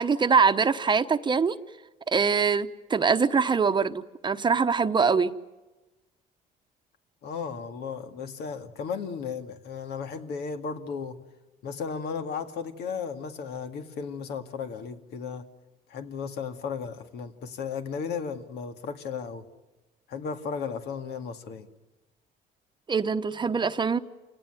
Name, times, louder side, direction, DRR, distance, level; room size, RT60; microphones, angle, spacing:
voice 1, 0.0-1.5 2.1-5.3 22.9-24.0, right 5 dB, 25° right, 10 dB, 1.0 m, -23 dB
voice 2, 7.2-11.2 11.6-15.4 15.9-19.4 20.1-21.7, left 6 dB, 75° left, 6 dB, 2.2 m, -35 dB
28.0 x 18.0 x 9.2 m, 1.1 s
cardioid pair, 110°, 17 cm